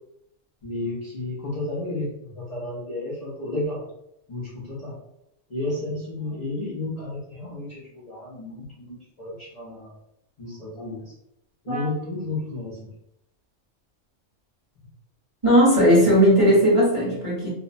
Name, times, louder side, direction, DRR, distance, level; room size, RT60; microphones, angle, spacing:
voice 1, 0.6-3.8 4.3-5.0 5.5-9.9 10.4-11.1 11.6-12.9 14.8-14.9, left 2 dB, 45° left, -8 dB, 0.5 m, -32 dB
voice 2, 15.4-17.5, equal, 30° right, -8 dB, 0.7 m, -17 dB
2.6 x 2.0 x 2.5 m, 0.80 s
omnidirectional pair, 1.3 m